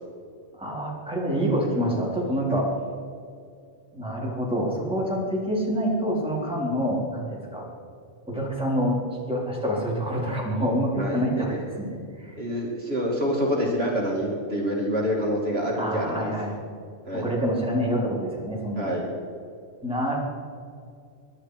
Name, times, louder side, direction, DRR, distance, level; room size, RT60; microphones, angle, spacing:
voice 1, 0.6-2.7 3.9-7.7 8.3-9.0 9.3-12.3 15.8-16.6 17.2-18.9 19.8-20.2, equal, 5° right, -5 dB, 3.9 m, -27 dB
voice 2, 11.0-11.5 12.4-16.3 17.0-17.3 18.8-19.1, equal, 50° right, -3 dB, 3.0 m, -27 dB
22.5 x 11.5 x 5.0 m, 2.4 s
omnidirectional pair, 1.3 m